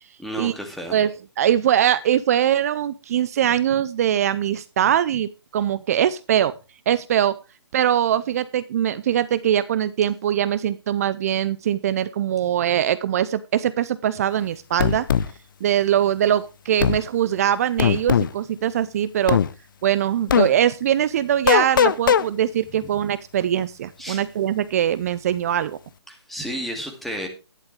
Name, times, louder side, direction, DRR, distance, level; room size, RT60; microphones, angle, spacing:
voice 1, 0.2-1.0 22.8-22.9 24.0-24.2 26.1-27.3, equal, ahead, 3 dB, 2.2 m, -32 dB
voice 2, 1.4-6.5 6.9-7.3 7.7-15.0 15.6-19.4 19.8-25.8, right 10 dB, 35° right, 15 dB, 0.6 m, -22 dB
sound 1, 14.8-15.3 16.8-17.0 17.8-18.3 19.3-19.5 20.3-20.5 21.5-22.2, left 8 dB, 45° left, 0.7 m, -18 dB
12.5 x 11.0 x 3.3 m, 0.30 s
figure-of-eight pair, 145°, 15 cm